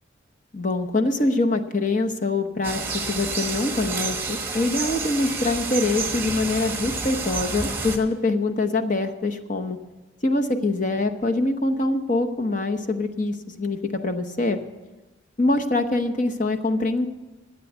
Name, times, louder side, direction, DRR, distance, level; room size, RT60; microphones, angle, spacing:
voice 1, 0.5-2.8 3.1-9.8 10.2-14.6 15.4-17.1, left 2 dB, 40° left, 6 dB, 0.9 m, -24 dB
sound 1, 2.6-8.0, right 4 dB, 10° right, 1.3 m, -29 dB
12.5 x 8.4 x 8.0 m, 1.1 s
head